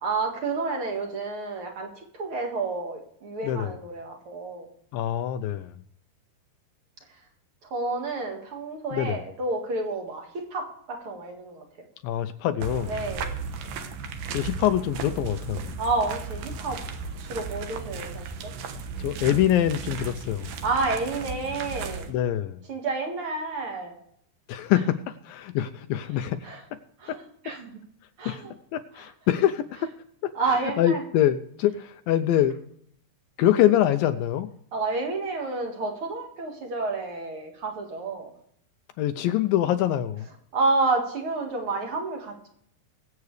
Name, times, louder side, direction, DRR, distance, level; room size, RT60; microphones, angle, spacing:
voice 1, 0.0-4.7 7.6-11.6 12.9-13.4 15.8-16.8 17.3-18.5 20.6-22.1 22.7-23.9 26.4-26.6 27.0-27.7 28.2-28.5 29.0-29.1 30.3-31.0 34.7-38.3 40.5-42.5, right 3 dB, 45° right, 2 dB, 2.1 m, -30 dB
voice 2, 3.4-3.8 4.9-5.7 8.9-9.2 12.0-13.0 14.3-15.7 19.0-20.5 22.1-22.6 24.5-26.5 27.1-27.2 28.3-28.4 28.7-29.9 30.2-30.3 30.8-32.6 33.4-34.5 39.0-40.3, left 12 dB, 80° left, 9 dB, 2.2 m, -24 dB
sound 1, 12.6-22.1, right 5 dB, 70° right, 2.6 m, -35 dB
22.5 x 8.2 x 3.3 m, 0.69 s
omnidirectional pair, 4.4 m